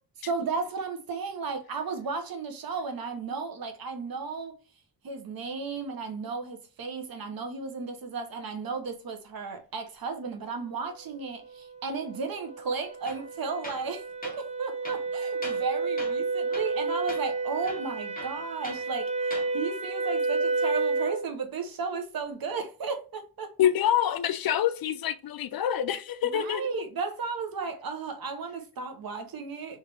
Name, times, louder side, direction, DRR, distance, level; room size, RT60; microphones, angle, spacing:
voice 1, 0.2-4.5 5.0-23.5 26.3-29.8, right 4 dB, 60° right, 0.9 m, -34 dB
sound 1, 11.3-21.3, right 3 dB, 20° right, 0.5 m, -31 dB
Tools, 13.0-13.3 13.6-13.9 14.2-14.4 14.8-15.7 16.0-16.2 16.5-16.8 17.1-17.2 17.6-18.8 19.2-19.5, left 2 dB, 20° left, 1.0 m, -42 dB
voice 2, 23.6-26.8, left 10 dB, 60° left, 0.5 m, -26 dB
3.3 x 3.2 x 3.4 m
wide cardioid pair, 115°, 40 cm